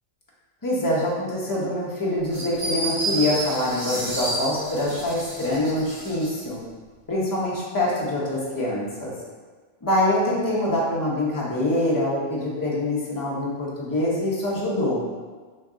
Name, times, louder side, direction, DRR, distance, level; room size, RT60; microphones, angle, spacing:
voice 1, 0.6-6.6 7.1-9.1 9.8-15.0, left 1 dB, 20° left, -5 dB, 0.6 m, -25 dB
sound 1, 2.3-6.3, right 2 dB, 80° right, 1.5 m, -30 dB
3.1 x 2.6 x 3.6 m, 1.5 s
omnidirectional pair, 1.2 m